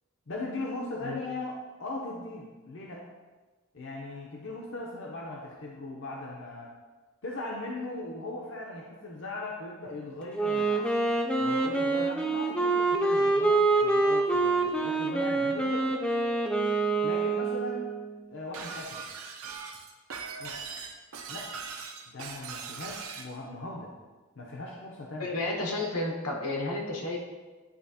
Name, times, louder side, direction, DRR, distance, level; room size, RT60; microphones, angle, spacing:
voice 1, 0.3-3.0 3.7-6.7 7.2-10.9 11.4-16.0 17.0-17.9 18.3-19.0 20.4-20.6 21.3-21.5 22.1-23.9 24.4-25.3, left 2 dB, 60° left, -2 dB, 0.6 m, -39 dB
Wind instrument woodwind instrument, 10.3-18.1, right 3 dB, 5° left, 0.4 m, -26 dB
Shatter, 18.5-23.3, right 5 dB, 75° right, 0.6 m, -40 dB
voice 2, 25.2-27.2, left 2 dB, 85° left, 0 dB, 1.1 m, -31 dB
10.0 x 3.4 x 2.8 m, 1.3 s
head